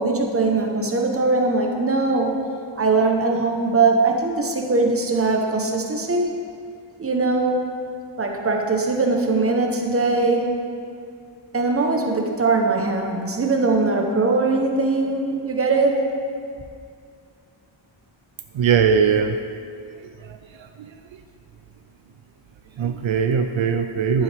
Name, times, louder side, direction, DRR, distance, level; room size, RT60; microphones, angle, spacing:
voice 1, 0.0-2.4 2.8-6.3 7.0-7.7 8.2-10.6 11.5-16.1, right 3 dB, 30° right, 2 dB, 0.9 m, -21 dB
voice 2, 18.5-19.4 22.8-24.2, right 6 dB, 70° right, 6 dB, 0.5 m, -19 dB
11.5 x 7.3 x 3.4 m, 2.2 s
wide cardioid pair, 160°, 48 cm